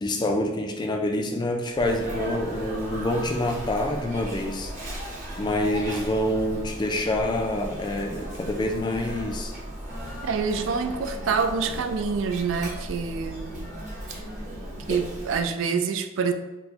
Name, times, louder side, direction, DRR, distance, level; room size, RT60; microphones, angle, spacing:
voice 1, 0.0-4.7 5.4-9.5 14.9-15.0, left 1 dB, 20° left, 2 dB, 0.3 m, -27 dB
Sneeze, 1.7-15.5, right 1 dB, 40° right, 0.8 m, -36 dB
voice 2, 10.2-13.7 14.9-16.3, right 5 dB, 70° right, 8 dB, 0.3 m, -26 dB
4.3 x 2.2 x 2.7 m, 1.1 s
head